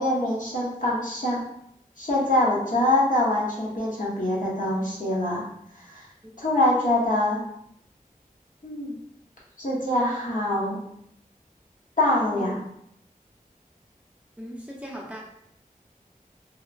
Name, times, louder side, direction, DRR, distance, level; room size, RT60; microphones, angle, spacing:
voice 1, 0.0-1.4 2.0-5.4 5.9-6.0 6.4-7.4 8.6-9.0 9.6-10.8 12.0-12.6, left 1 dB, 60° left, -6 dB, 0.9 m, -24 dB
voice 2, 14.4-15.2, right 1 dB, 10° right, -4 dB, 0.6 m, -37 dB
2.8 x 2.0 x 2.5 m, 0.75 s
wide cardioid pair, 40°, 15 cm